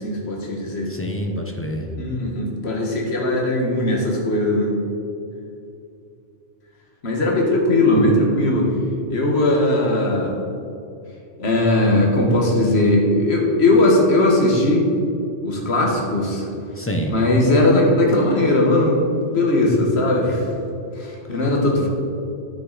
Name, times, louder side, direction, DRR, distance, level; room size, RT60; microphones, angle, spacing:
voice 1, 0.0-0.9 2.0-4.7 7.0-8.7 9.1-10.4 11.4-14.8 15.4-16.5 17.1-19.0 19.3-20.5 20.9-21.9, left 1 dB, 60° left, -1 dB, 1.6 m, -19 dB
voice 2, 0.9-1.9 12.0-12.1 16.8-17.1 21.8-21.9, equal, 15° left, 2 dB, 0.6 m, -27 dB
9.3 x 6.5 x 4.0 m, 2.6 s
omnidirectional pair, 1.2 m